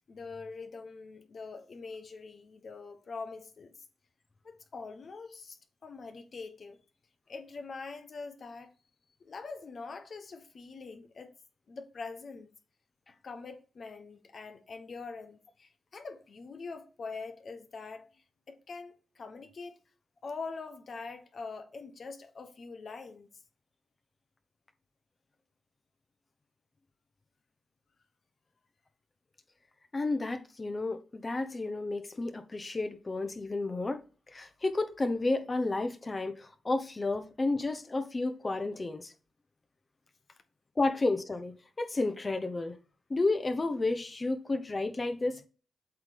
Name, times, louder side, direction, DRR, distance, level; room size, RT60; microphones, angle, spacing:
voice 1, 0.1-3.8 4.4-6.8 7.3-8.7 9.2-11.3 11.7-12.5 13.1-19.8 20.2-23.3 40.3-40.4, left 4 dB, 55° left, 1.0 m, -44 dB
voice 2, 29.9-34.0 34.3-39.1 40.8-42.8 43.1-45.5, left 2 dB, 35° left, 1.0 m, -31 dB
7.9 x 3.4 x 5.3 m
cardioid pair, 65°, 0 cm